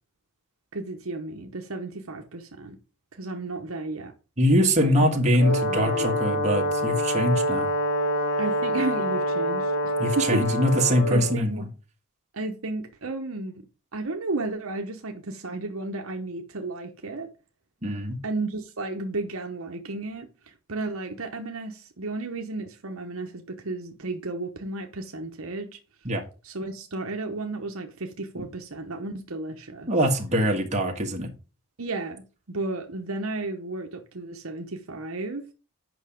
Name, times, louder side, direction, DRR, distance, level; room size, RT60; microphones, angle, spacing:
voice 1, 0.7-2.8 3.1-4.1 4.5-5.2 5.7-6.1 8.4-10.4 11.1-11.7 12.3-13.6 13.9-17.3 18.2-20.3 20.7-25.8 26.4-29.9 31.8-35.5, right 2 dB, 65° right, 1.0 m, -33 dB
voice 2, 4.4-7.7 10.0-11.7 17.8-18.2 26.0-26.2 28.4-28.5 29.9-31.3, equal, 30° right, 1.6 m, -23 dB
Brass instrument, 5.4-11.4, equal, 55° left, 2.1 m, -26 dB
8.1 x 5.8 x 5.1 m
head